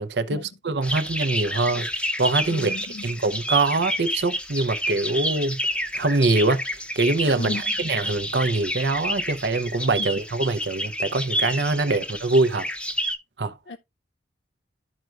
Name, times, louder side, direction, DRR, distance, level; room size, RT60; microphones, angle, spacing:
voice 1, 0.0-2.7 3.0-5.6 5.9-6.6 7.0-12.7 13.4-13.5, right 3 dB, 70° right, 0.8 m, -24 dB
sound 1, 0.8-13.2, equal, 5° left, 0.7 m, -29 dB
voice 2, 2.5-3.1 7.4-7.6 10.0-10.1 12.0-12.1 13.7-13.8, left 2 dB, 90° left, 0.5 m, -34 dB
13.0 x 4.5 x 2.4 m
head